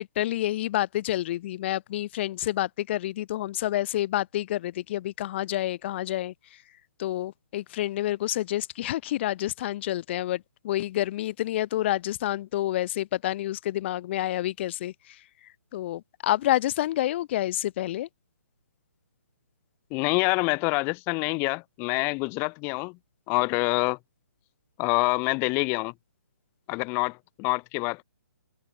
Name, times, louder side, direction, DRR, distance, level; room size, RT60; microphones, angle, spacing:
voice 1, 0.0-6.3 7.0-15.2 15.7-18.1, left 14 dB, 40° left, 1.8 m, -28 dB
voice 2, 19.9-23.0 23.3-24.0 24.8-25.9 26.7-28.0, left 30 dB, 25° left, 0.7 m, -26 dB
open air
figure-of-eight pair, 135°, 10 cm